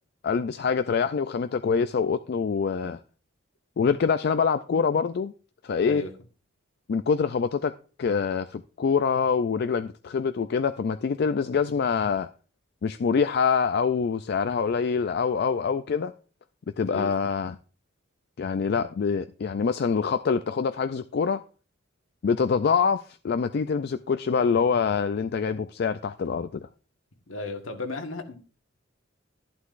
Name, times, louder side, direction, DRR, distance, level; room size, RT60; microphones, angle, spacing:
voice 1, 0.2-3.0 3.8-5.3 5.6-6.0 6.9-7.7 8.0-12.3 12.8-16.1 16.8-17.6 18.4-21.4 22.2-26.7, left 5 dB, 55° left, 0.3 m, -25 dB
voice 2, 16.8-17.2 27.3-28.4, left 2 dB, 85° left, 1.4 m, -34 dB
11.5 x 11.5 x 2.5 m
head